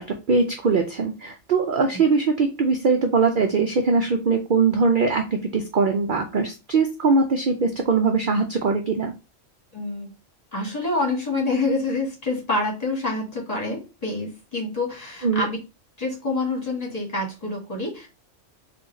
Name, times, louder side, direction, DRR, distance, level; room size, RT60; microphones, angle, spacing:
voice 1, 0.0-9.1 15.2-15.5, right 4 dB, 55° right, 4 dB, 0.6 m, -21 dB
voice 2, 9.7-10.1 10.5-15.6 16.0-18.1, left 2 dB, 30° left, -1 dB, 1.6 m, -27 dB
3.9 x 2.5 x 3.9 m, 0.27 s
omnidirectional pair, 1.3 m